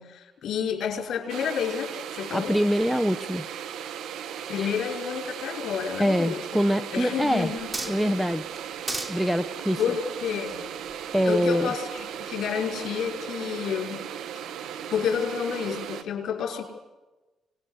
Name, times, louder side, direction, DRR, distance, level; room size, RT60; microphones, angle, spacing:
voice 1, 0.0-2.6 4.5-6.6 6.9-8.0 9.8-10.7 11.3-14.1 14.9-16.6, left 7 dB, 70° left, 3 dB, 5.8 m, -30 dB
sound 1, 1.3-16.0, right 9 dB, 80° right, 1.8 m, -37 dB
voice 2, 2.3-3.4 4.5-4.7 6.0-7.5 7.9-8.4 9.1-9.8 11.1-11.7, equal, ahead, 13 dB, 1.0 m, -24 dB
sound 2, 7.3-8.2 8.6-9.2 10.1-11.5 12.0-12.2, right 2 dB, 25° right, 3.2 m, -36 dB
26.0 x 20.5 x 8.4 m, 1.1 s
cardioid pair, 90°, 0 cm